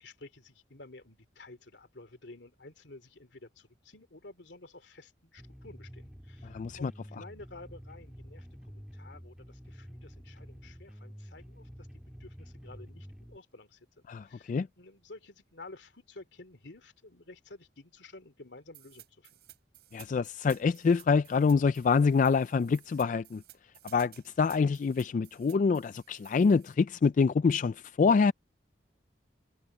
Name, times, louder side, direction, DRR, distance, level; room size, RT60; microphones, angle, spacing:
voice 1, 0.0-19.4, left 2 dB, 80° left, 2.8 m, -52 dB
sound 1, 5.4-13.4, equal, 5° right, 2.0 m, -49 dB
voice 2, 6.5-6.9 14.1-14.7 19.9-23.4 23.9-24.1 24.4-28.3, left 5 dB, 45° left, 0.3 m, -26 dB
sound 2, 18.7-26.7, right 13 dB, 60° right, 8.0 m, -55 dB
head